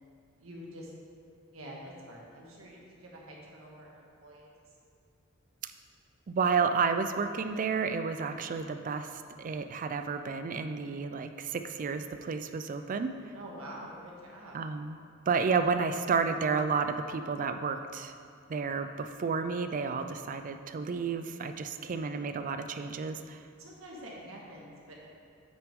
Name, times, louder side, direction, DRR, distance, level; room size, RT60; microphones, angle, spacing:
voice 1, 0.4-0.9 1.5-4.5 13.3-14.6 21.7-22.0 23.6-24.9, right 1 dB, 90° right, -3 dB, 1.5 m, -47 dB
voice 2, 6.3-13.1 14.5-15.0 15.3-18.1 18.5-23.4, right 5 dB, 40° right, 8 dB, 0.4 m, -31 dB
8.1 x 6.1 x 3.6 m, 2.4 s
head